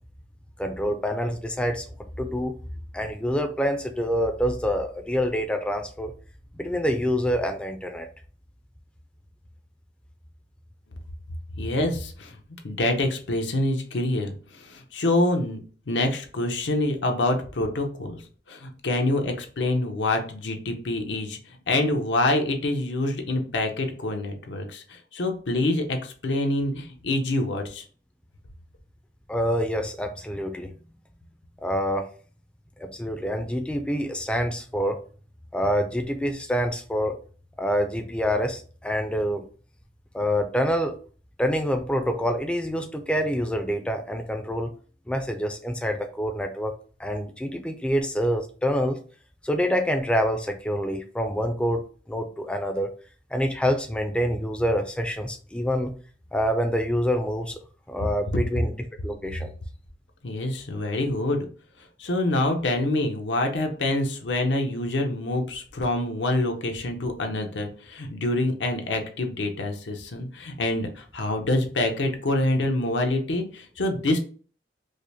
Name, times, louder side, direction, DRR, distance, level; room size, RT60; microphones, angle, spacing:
voice 1, 0.6-1.8 2.2-2.5 2.9-6.1 6.6-8.1 29.3-30.8 31.6-32.1 32.8-35.0 35.5-37.2 37.6-39.4 40.1-40.9 41.4-44.7 45.1-46.7 47.0-49.0 49.4-52.9 53.3-55.9 56.3-57.6 57.9-58.8 59.0-59.5, equal, 5° left, 5 dB, 0.3 m, -26 dB
voice 2, 11.6-12.4 12.6-15.6 15.9-18.2 18.5-21.4 21.7-27.8 60.2-61.5 62.0-74.2, left 1 dB, 85° left, 4 dB, 0.7 m, -26 dB
4.9 x 2.1 x 2.7 m, 0.41 s
head